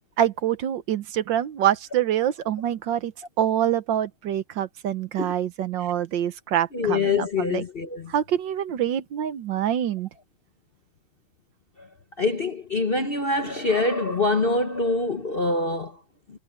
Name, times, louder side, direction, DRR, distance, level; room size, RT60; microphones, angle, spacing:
voice 1, 0.2-3.1 3.4-7.6 8.1-10.1, right 10 dB, 70° right, 1.5 m, -25 dB
voice 2, 6.7-8.1 12.2-16.0, left 3 dB, 40° left, 0.9 m, -24 dB
omnidirectional pair, 2.2 m